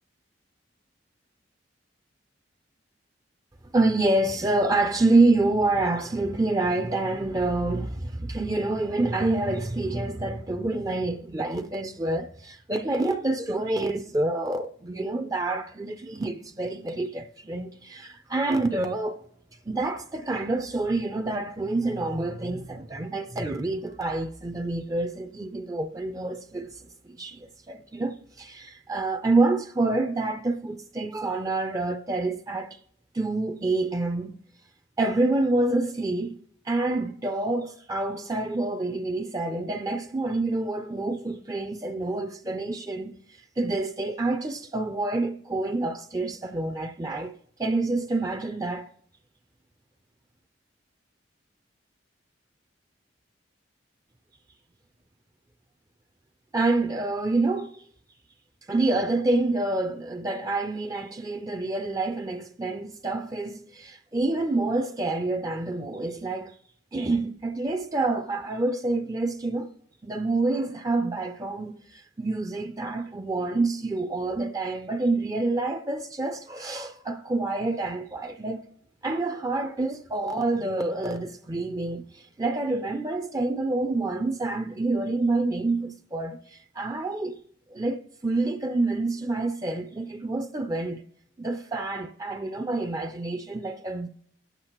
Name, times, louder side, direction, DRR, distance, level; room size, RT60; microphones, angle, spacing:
voice 1, 3.7-19.2 19.7-32.8 33.1-34.4 35.0-36.4 36.7-48.9 56.5-57.8 58.7-66.6 66.9-69.7 70.0-78.6 79.0-87.4 87.7-91.0 91.4-94.1, right 2 dB, 20° right, 0.4 m, -27 dB
21.0 x 8.1 x 2.9 m
head